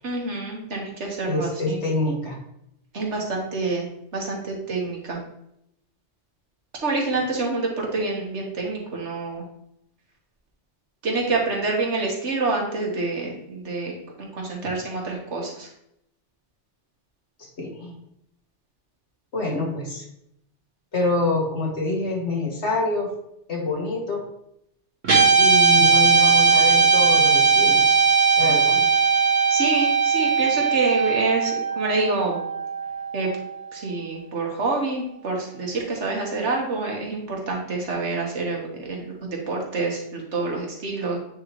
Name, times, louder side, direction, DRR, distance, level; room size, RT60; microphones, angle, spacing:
voice 1, 0.0-1.8 2.9-3.9 4.1-5.2 6.8-9.4 11.0-14.0 14.3-15.7 29.5-32.4 33.1-33.3 33.7-41.2, right 3 dB, 70° right, 0 dB, 1.6 m, -27 dB
voice 2, 1.3-2.4 17.6-17.9 19.3-20.0 20.9-23.1 23.5-24.2 25.4-28.0 28.4-28.8, left 2 dB, 65° left, -1 dB, 1.8 m, -26 dB
Guitar, 25.0-33.5, right 5 dB, 85° right, 1.7 m, -19 dB
8.6 x 3.9 x 3.1 m, 0.77 s
omnidirectional pair, 1.2 m